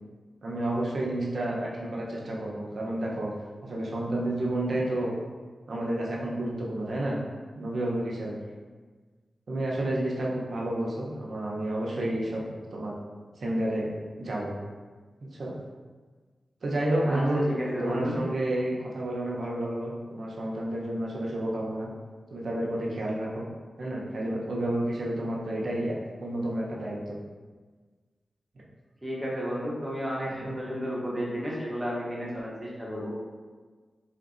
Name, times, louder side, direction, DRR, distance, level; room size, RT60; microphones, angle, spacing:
voice 1, 0.4-3.3 3.6-5.2 5.7-7.2 7.5-8.4 9.5-12.4 12.7-12.9 13.4-13.9 14.2-14.5 15.3-15.5 16.6-17.4 17.8-21.9 22.3-23.5 23.8-26.0 26.2-27.2 30.3-30.5, right 1 dB, 65° right, -3 dB, 0.7 m, -30 dB
voice 2, 17.0-18.2 29.0-33.1, equal, 15° right, -5 dB, 0.8 m, -32 dB
3.8 x 2.6 x 2.5 m, 1.4 s
wide cardioid pair, 80°, 0 cm